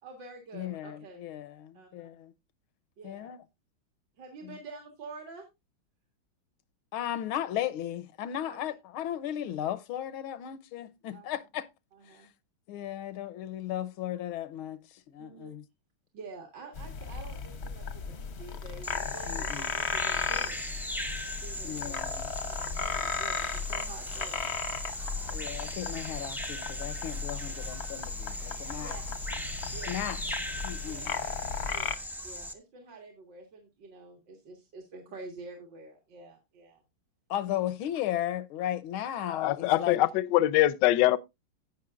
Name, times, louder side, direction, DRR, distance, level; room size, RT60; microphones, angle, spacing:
voice 1, 0.0-1.3 1.7-2.1 3.0-3.3 4.2-5.5 8.5-8.6 11.1-11.3 11.9-12.3 15.2-15.5 16.1-20.6 21.4-22.0 22.5-24.5 28.8-29.2 29.7-30.0 30.9-31.2 31.7-36.8, right 3 dB, 60° right, 2.3 m, -48 dB
voice 2, 0.5-2.3 3.0-3.4 4.4-4.6 6.9-11.7 12.1-12.3 12.7-15.6 19.3-19.9 21.6-22.3 25.2-29.0 29.9-30.2 30.6-31.1 37.3-40.0, left 11 dB, 85° left, 1.6 m, -36 dB
sound 1, 16.8-31.9, left 5 dB, 50° left, 0.8 m, -36 dB
Bird vocalization bird call bird song, 18.8-32.5, equal, ahead, 0.5 m, -39 dB
voice 3, 39.3-41.2, left 15 dB, 70° left, 1.1 m, -23 dB
16.5 x 6.1 x 2.4 m
omnidirectional pair, 2.3 m